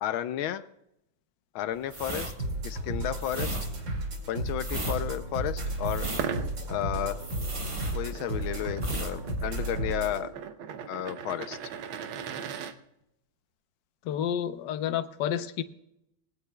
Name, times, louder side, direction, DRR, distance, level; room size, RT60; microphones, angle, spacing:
voice 1, 0.0-0.6 1.5-2.3 2.6-3.6 4.3-6.1 6.7-7.2 7.9-10.3 10.9-11.6, left 11 dB, 85° left, 11 dB, 1.5 m, -32 dB
sound 1, 1.9-8.4 8.7-9.1 9.4-9.6, right 2 dB, 20° right, 0.9 m, -36 dB
sound 2, 2.4-10.2, right 1 dB, 65° right, 3.1 m, -33 dB
sound 3, 6.1-12.7, right 7 dB, 80° right, 1.7 m, -39 dB
voice 2, 14.1-15.6, left 9 dB, 65° left, 9 dB, 1.4 m, -30 dB
20.5 x 16.0 x 2.3 m, 0.81 s
omnidirectional pair, 2.2 m